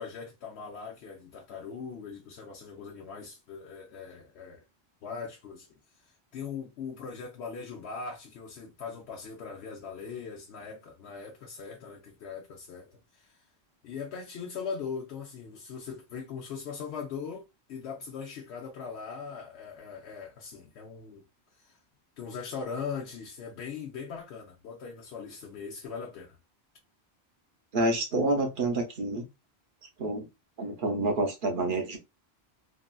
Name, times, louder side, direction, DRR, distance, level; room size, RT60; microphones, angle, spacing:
voice 1, 0.0-4.6 5.0-5.7 6.0-13.5 13.8-21.2 21.6-21.8 22.2-26.4, left 5 dB, 85° left, 0.9 m, -40 dB
voice 2, 27.7-29.2 30.0-30.3 30.6-32.0, right 2 dB, 55° right, 0.8 m, -28 dB
3.0 x 2.4 x 2.2 m
omnidirectional pair, 1.1 m